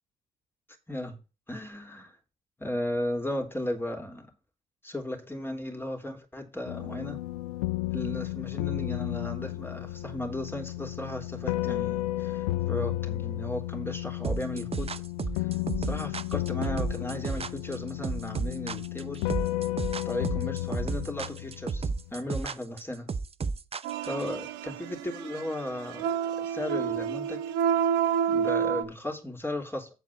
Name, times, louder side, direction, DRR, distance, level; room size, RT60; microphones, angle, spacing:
voice 1, 0.9-1.2 1.5-2.1 2.6-4.3 4.8-7.2 7.9-14.9 15.4-15.5 15.8-19.3 20.0-23.1 24.0-27.4 28.3-29.9, left 1 dB, 10° left, 3.2 m, -35 dB
sound 1, 6.7-22.1, left 16 dB, 85° left, 0.4 m, -33 dB
sound 2, 14.2-24.3, right 4 dB, 35° right, 0.7 m, -32 dB
sound 3, 23.8-28.8, right 8 dB, 80° right, 0.9 m, -29 dB
7.9 x 4.9 x 7.0 m
hypercardioid pair, 50°, 18 cm